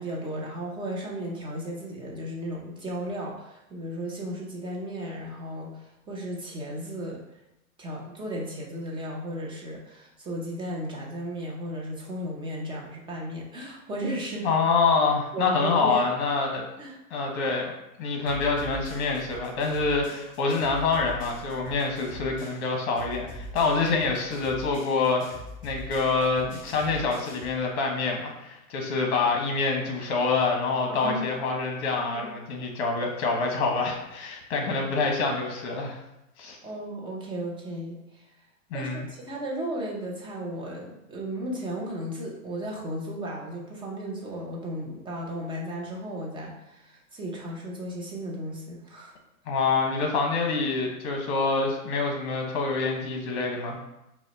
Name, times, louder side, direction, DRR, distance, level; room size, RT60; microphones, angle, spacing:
voice 1, 0.0-7.2 7.8-14.5 15.3-16.0 16.8-17.0 30.9-31.3 32.0-32.3 36.6-38.2 38.7-49.1, equal, 10° right, -2 dB, 0.6 m, -35 dB
voice 2, 14.4-16.7 17.1-17.7 18.0-25.2 25.6-36.0 36.4-36.6 38.7-39.1 49.5-53.8, left 4 dB, 50° left, 1 dB, 1.2 m, -26 dB
sound 1, 18.3-22.7 23.0-27.6, right 1 dB, 20° left, 1.4 m, -43 dB
4.9 x 2.3 x 4.0 m, 0.89 s
hypercardioid pair, 130°, 44 cm